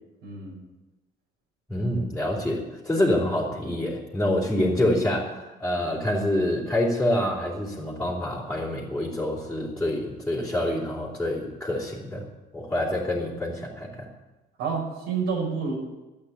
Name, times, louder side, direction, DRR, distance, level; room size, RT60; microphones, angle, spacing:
voice 1, 0.2-0.6 14.6-15.8, right 5 dB, 85° right, -1 dB, 5.6 m, -29 dB
voice 2, 1.7-12.2 12.5-14.1, left 1 dB, 5° left, -6 dB, 3.6 m, -26 dB
12.5 x 8.7 x 9.8 m, 1.1 s
cardioid pair, 110°, 17 cm